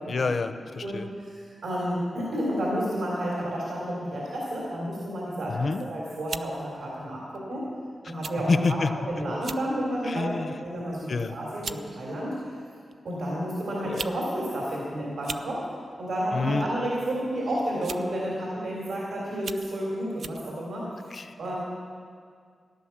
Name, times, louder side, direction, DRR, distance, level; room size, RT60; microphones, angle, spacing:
voice 1, 0.1-1.1 5.5-5.8 8.5-8.9 10.1-10.5 11.1-11.3 13.8-14.1 16.3-16.7 21.1-21.3, left 4 dB, 45° left, 10 dB, 0.7 m, -27 dB
voice 2, 0.8-7.6 8.1-10.3 10.6-12.4 13.0-15.6 16.0-21.6, equal, 85° right, -5 dB, 3.4 m, -31 dB
sound 1, 5.6-5.8 6.3-6.5 7.3-7.5 8.2-8.4 8.7-8.8 9.3-9.7 10.2-10.5 11.2-11.3 11.6-11.8 12.9-13.0 13.8-14.2 14.4-14.5 15.1-15.5 16.7-17.0 17.8-18.2 18.7-18.8 19.3-19.7 20.2-20.4, right 5 dB, 65° right, 0.5 m, -37 dB
16.0 x 11.0 x 7.3 m, 2.1 s
wide cardioid pair, 160°, 0 cm